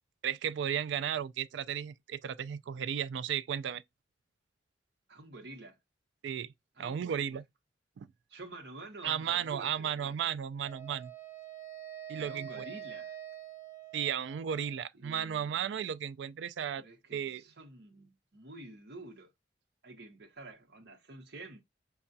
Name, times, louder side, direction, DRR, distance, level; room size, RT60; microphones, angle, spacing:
voice 1, 0.2-3.8 6.2-6.5 6.8-7.4 8.0-8.1 9.0-11.1 12.1-12.6 13.9-16.8 17.1-17.4, right 8 dB, 80° right, 0.3 m, -34 dB
voice 2, 5.1-5.8 6.7-7.4 8.3-10.3 12.2-13.2 15.0-15.7 16.8-19.3 19.8-21.6, right 2 dB, 60° right, 0.9 m, -49 dB
Wind instrument woodwind instrument, 10.6-14.8, right 10 dB, 15° right, 0.9 m, -46 dB
5.5 x 2.3 x 2.6 m
head